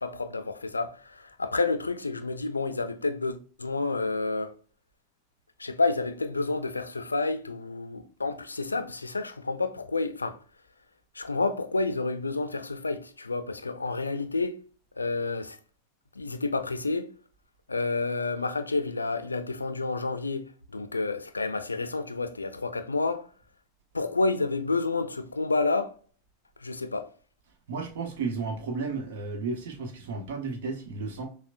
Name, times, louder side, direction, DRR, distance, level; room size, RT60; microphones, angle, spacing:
voice 1, 0.0-4.5 5.6-10.4 11.2-14.6 15.0-15.6 16.2-17.1 17.7-20.4 20.7-23.3 23.9-25.9 26.6-27.1, left 3 dB, 90° left, 0.3 m, -29 dB
voice 2, 27.7-31.3, right 4 dB, 65° right, 0.9 m, -33 dB
5.9 x 2.1 x 2.5 m
figure-of-eight pair, 85°, 0 cm